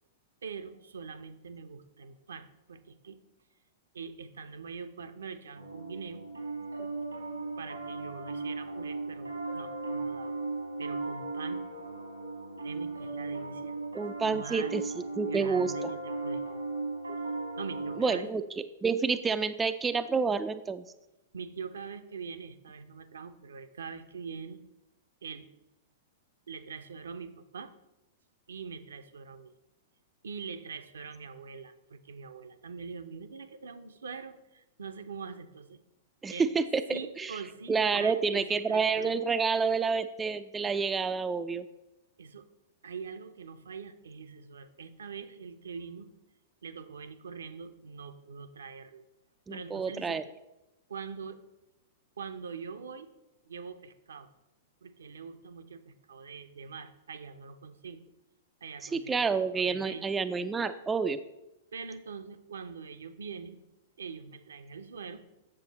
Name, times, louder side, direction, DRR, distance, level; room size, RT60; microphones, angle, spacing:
voice 1, 0.4-3.2 3.9-6.2 6.8-6.9 7.6-10.4 10.8-11.6 12.6-13.8 14.2-14.8 15.1-16.7 17.6-18.3 21.3-24.6 25.2-25.5 26.5-27.7 28.5-29.5 30.2-35.8 36.3-36.5 36.9-39.2 42.2-42.5 42.8-46.1 46.6-49.0 49.5-50.2 50.9-51.4 52.2-53.1 53.4-54.3 54.8-58.0 58.6-60.1 61.7-63.6 64.0-65.2, right 5 dB, 65° right, 9 dB, 0.6 m, -43 dB
Piano, 5.6-18.0, right 3 dB, 90° right, 1.5 m, -37 dB
voice 2, 13.9-14.8 15.2-15.7 18.0-18.4 18.8-20.8 36.2-37.3 37.7-41.6 49.5-50.2 58.9-61.2, right 5 dB, 15° right, 10 dB, 0.3 m, -29 dB
7.7 x 6.9 x 4.1 m, 0.95 s
figure-of-eight pair, 105°, 0 cm